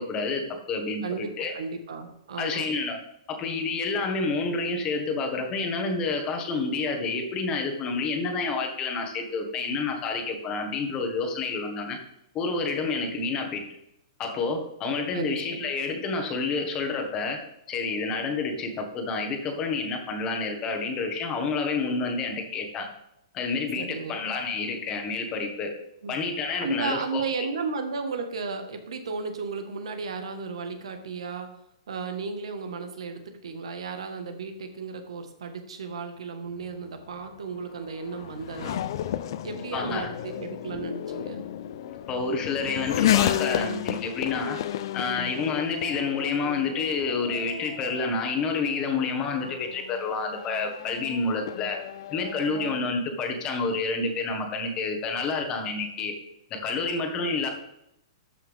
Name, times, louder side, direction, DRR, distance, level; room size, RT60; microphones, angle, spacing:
voice 1, 0.0-1.6 2.4-3.0 3.3-12.0 12.3-13.6 14.2-17.4 17.7-22.9 23.3-25.7 26.1-27.2 39.7-40.1 41.8-44.6 44.9-51.8 52.1-56.1 56.5-57.5, left 4 dB, 25° left, 3 dB, 1.4 m, -29 dB
voice 2, 1.0-2.7 15.1-15.7 23.8-24.2 26.0-26.2 26.6-31.5 31.9-38.8 39.4-41.4, right 4 dB, 85° right, 7 dB, 1.5 m, -34 dB
Race car auto racing / Accelerating revving vroom, 36.6-52.9, left 11 dB, 55° left, 0.6 m, -32 dB
13.0 x 5.6 x 3.6 m, 0.80 s
hypercardioid pair, 160°, 3 cm